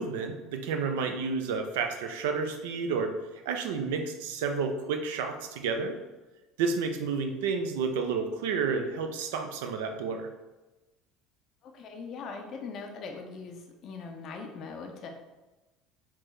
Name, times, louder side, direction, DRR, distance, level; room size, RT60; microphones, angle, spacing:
voice 1, 0.0-3.1 3.5-6.0 6.6-10.3, right 5 dB, 75° right, 5 dB, 0.4 m, -30 dB
voice 2, 11.6-15.1, left 4 dB, 50° left, 3 dB, 0.4 m, -41 dB
4.4 x 2.0 x 3.1 m, 1.1 s
hypercardioid pair, 75°, 0 cm